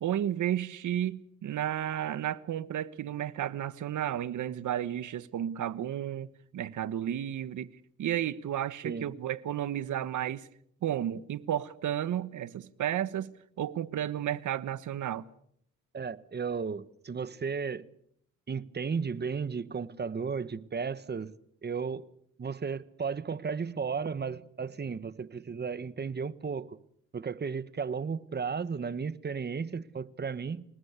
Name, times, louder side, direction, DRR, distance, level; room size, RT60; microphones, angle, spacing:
voice 1, 0.0-6.3 6.5-7.7 8.0-10.5 10.8-13.3 13.6-15.3, right 11 dB, 75° right, 1.3 m, -32 dB
voice 2, 15.9-17.9 18.5-21.3 21.6-22.0 22.4-26.8 27.1-30.6, right 5 dB, 35° right, 1.3 m, -34 dB
28.0 x 19.0 x 8.3 m
cardioid pair, 105°, 30 cm